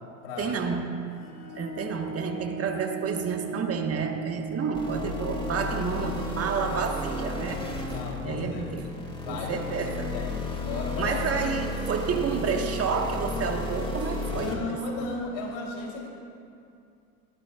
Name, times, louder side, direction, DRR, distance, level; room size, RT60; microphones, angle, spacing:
voice 1, 0.4-0.9 1.5-7.6 8.2-8.9 9.2-10.2 11.0-14.8, right 5 dB, 35° right, 3 dB, 1.5 m, -30 dB
sound 1, 1.1-8.6, right 5 dB, 90° left, 1.8 m, -41 dB
sound 2, 4.7-14.5, left 2 dB, 10° left, 2.4 m, -33 dB
voice 2, 7.9-9.7 10.1-11.2 14.3-16.1, left 3 dB, 65° left, -2 dB, 3.6 m, -35 dB
19.0 x 14.0 x 2.5 m, 2.4 s
hypercardioid pair, 85°, 43 cm